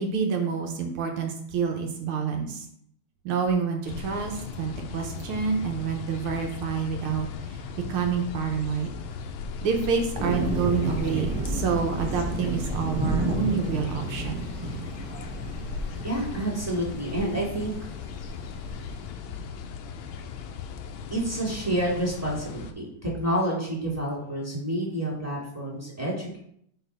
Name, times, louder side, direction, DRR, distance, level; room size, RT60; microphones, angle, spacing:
voice 1, 0.0-2.7 3.2-7.6 7.9-8.9 9.6-14.5, right 6 dB, 75° right, 3 dB, 1.7 m, -28 dB
sound 1, 3.9-22.7, left 5 dB, 75° left, 1.4 m, -37 dB
sound 2, 10.2-19.0, right 1 dB, 40° right, 0.4 m, -32 dB
voice 2, 16.0-17.9 21.1-26.4, right 1 dB, 10° right, -5 dB, 1.5 m, -29 dB
5.0 x 4.1 x 5.3 m, 0.68 s
omnidirectional pair, 2.4 m